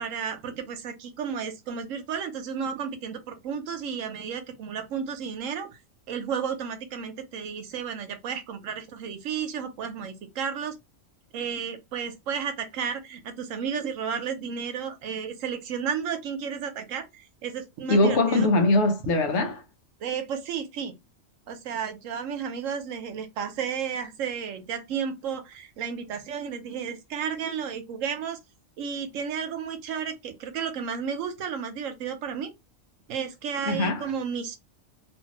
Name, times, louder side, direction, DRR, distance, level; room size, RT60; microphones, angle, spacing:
voice 1, 0.0-5.8 6.1-10.7 11.3-18.5 20.0-20.9 21.5-28.4 28.8-32.5 33.1-34.6, right 7 dB, 85° right, 1.1 m, -32 dB
voice 2, 17.9-19.6 33.7-34.1, left 2 dB, 65° left, 0.9 m, -22 dB
2.7 x 2.5 x 2.9 m
omnidirectional pair, 1.3 m